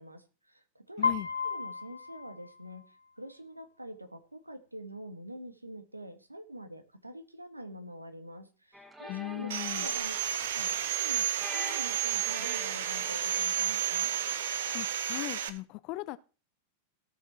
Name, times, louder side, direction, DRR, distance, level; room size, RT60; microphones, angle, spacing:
voice 1, 0.0-1.1 1.4-10.1 10.5-11.3 11.5-14.1, right 1 dB, 85° right, 9 dB, 1.7 m, -45 dB
Piano, 1.0-3.1, left 5 dB, 75° left, 1.0 m, -34 dB
voice 2, 1.0-1.3 9.1-9.9 14.7-16.2, left 20 dB, 40° left, 17 dB, 0.7 m, -38 dB
sound 1, 8.7-14.8, right 1 dB, 10° right, 2.2 m, -47 dB
Sawing, 9.5-15.5, right 10 dB, 60° right, 1.2 m, -31 dB
17.5 x 6.5 x 4.4 m, 0.35 s
figure-of-eight pair, 90°, 0 cm